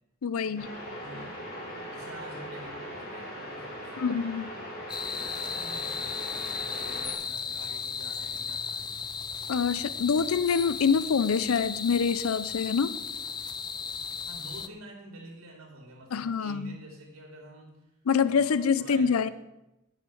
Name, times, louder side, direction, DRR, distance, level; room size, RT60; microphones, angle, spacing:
voice 1, 0.2-0.7 4.0-4.5 9.5-12.9 16.1-16.8 18.1-19.3, left 6 dB, 85° left, 15 dB, 0.5 m, -26 dB
sound 1, 0.6-7.1, equal, 50° left, 4.0 m, -40 dB
voice 2, 1.0-1.4 1.6-4.2 5.2-9.0 14.2-17.9 18.2-19.3, right 1 dB, 70° right, 0 dB, 2.6 m, -48 dB
sound 2, 4.9-14.7, left 6 dB, 20° left, 0.4 m, -35 dB
10.5 x 6.6 x 7.7 m, 0.94 s
head